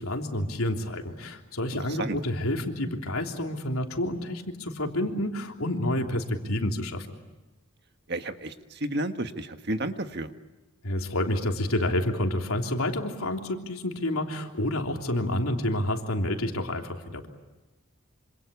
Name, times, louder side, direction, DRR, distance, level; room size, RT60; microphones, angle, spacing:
voice 1, 0.0-7.1 10.8-17.3, left 1 dB, 85° left, 3 dB, 3.3 m, -29 dB
voice 2, 8.1-10.3, right 1 dB, 50° right, 8 dB, 1.6 m, -31 dB
26.5 x 26.5 x 8.3 m, 1.1 s
head